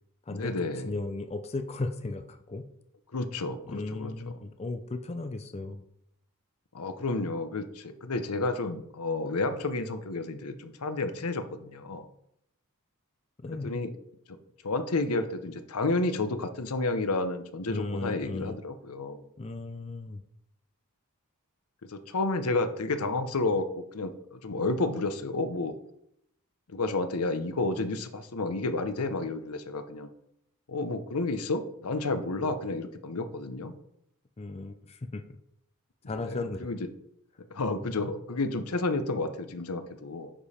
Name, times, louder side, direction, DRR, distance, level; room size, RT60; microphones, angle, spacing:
voice 1, 0.3-0.9 3.1-4.1 6.7-12.1 13.6-13.9 14.3-14.4 14.6-19.3 21.8-23.7 23.9-25.7 26.7-30.1 30.7-33.7 36.2-36.8 37.5-40.3, left 2 dB, 80° left, 10 dB, 0.8 m, -31 dB
voice 2, 0.8-2.6 3.7-5.9 13.4-13.8 17.7-18.6 19.4-20.2 34.4-35.2 36.1-36.7, left 2 dB, 30° left, 8 dB, 0.5 m, -36 dB
10.0 x 5.1 x 4.2 m, 0.76 s
head